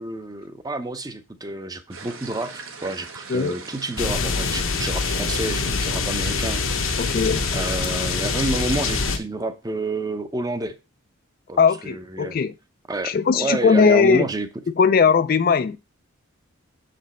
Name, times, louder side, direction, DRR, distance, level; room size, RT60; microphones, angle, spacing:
voice 1, 0.0-6.6 7.5-10.7 11.5-12.4 12.9-14.5, right 2 dB, 15° right, 0.6 m, -29 dB
sound 1, 1.9-9.1, right 4 dB, 75° right, 1.3 m, -39 dB
sound 2, 4.0-9.2, left 4 dB, 70° left, 0.9 m, -25 dB
voice 2, 7.0-7.4 11.6-12.5 13.0-14.3 14.8-15.8, left 5 dB, 45° left, 0.3 m, -19 dB
6.6 x 5.1 x 4.2 m
head